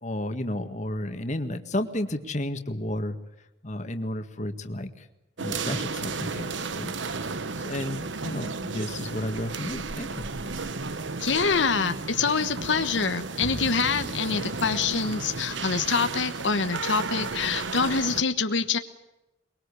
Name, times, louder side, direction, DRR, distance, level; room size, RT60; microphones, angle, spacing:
voice 1, 0.0-3.2 3.6-5.1 5.4-6.9 7.2-7.3 7.6-10.3, left 1 dB, 40° left, 7 dB, 1.9 m, -32 dB
sound 1, 5.4-18.2, right 4 dB, 80° right, 1.1 m, -33 dB
voice 2, 11.2-18.8, left 5 dB, 80° left, 8 dB, 1.2 m, -25 dB
23.5 x 22.5 x 8.5 m, 0.96 s
head